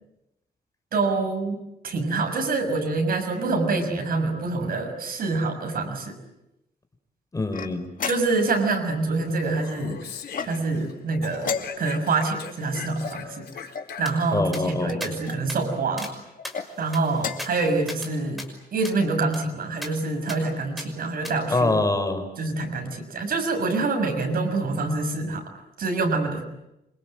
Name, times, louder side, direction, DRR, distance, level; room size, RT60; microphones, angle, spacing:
voice 1, 0.9-6.2 8.0-10.1 10.4-13.7 14.0-16.1 16.8-18.4 18.7-21.7 22.4-25.4 25.8-26.4, right 3 dB, 65° right, 5 dB, 6.5 m, -26 dB
voice 2, 7.3-7.9 14.3-15.0 21.5-22.2, left 2 dB, 20° left, 7 dB, 4.8 m, -24 dB
sound 1, 7.5-8.6 10.3-10.9 11.4-12.1 13.0-14.0 14.8-15.4 16.4-16.7 17.1-17.6, left 6 dB, 55° left, 2.3 m, -34 dB
Speech, 9.3-10.9 11.2-14.4, left 8 dB, 85° left, 4.3 m, -41 dB
sound 2, 14.1-14.2 14.5-14.6 15.0-15.1 15.5-15.6 16.0-16.1 16.4-18.1 18.4-18.5 18.8-19.0 19.3-19.4 19.8-19.9 20.3-20.4 20.8-20.9 21.2-21.4, left 1 dB, ahead, 5.9 m, -38 dB
28.5 x 26.0 x 7.9 m, 0.89 s
wide cardioid pair, 140°, 16 cm